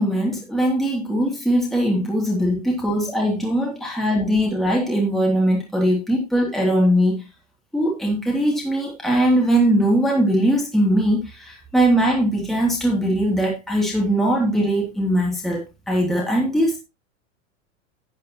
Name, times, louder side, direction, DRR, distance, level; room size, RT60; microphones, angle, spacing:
voice 1, 0.0-7.2 7.7-16.8, right 1 dB, ahead, -2 dB, 2.9 m, -20 dB
12.5 x 8.8 x 3.0 m, 0.27 s
hypercardioid pair, 95°, 39 cm